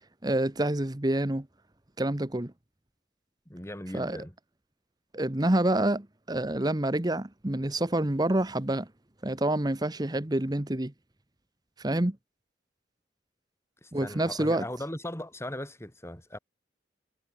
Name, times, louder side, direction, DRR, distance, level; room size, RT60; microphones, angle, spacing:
voice 1, 0.2-1.5 2.0-2.5 3.9-4.2 5.1-8.9 9.2-10.9 11.8-12.2 13.9-14.6, right 1 dB, 20° right, 1.0 m, -27 dB
voice 2, 3.5-4.3 13.8-16.4, left 1 dB, 15° left, 4.6 m, -38 dB
head